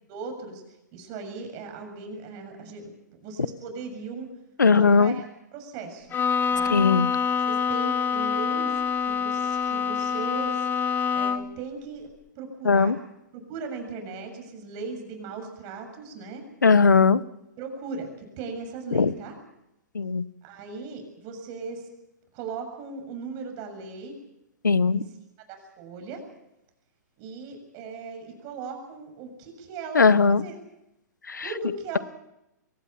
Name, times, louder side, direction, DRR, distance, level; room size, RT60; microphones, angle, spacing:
voice 1, 0.1-0.6 0.9-2.9 3.2-4.3 4.7-6.1 6.5-6.8 7.5-8.7 9.0-10.7 11.1-12.1 12.4-13.0 13.3-16.5 17.6-19.4 20.4-21.9 22.3-24.2 24.9-25.0 25.5-26.2 27.2-30.6 31.4-32.0, right 4 dB, 40° right, 5 dB, 7.3 m, -38 dB
voice 2, 4.6-5.2 6.7-7.1 12.6-13.0 16.6-17.2 18.9-19.1 19.9-20.2 24.6-25.0 29.9-30.4 31.3-31.5, left 5 dB, 90° left, 18 dB, 1.0 m, -19 dB
Bowed string instrument, 6.1-11.6, left 6 dB, 20° left, 1.2 m, -26 dB
23.5 x 18.0 x 7.4 m, 0.87 s
hypercardioid pair, 120°, 10 cm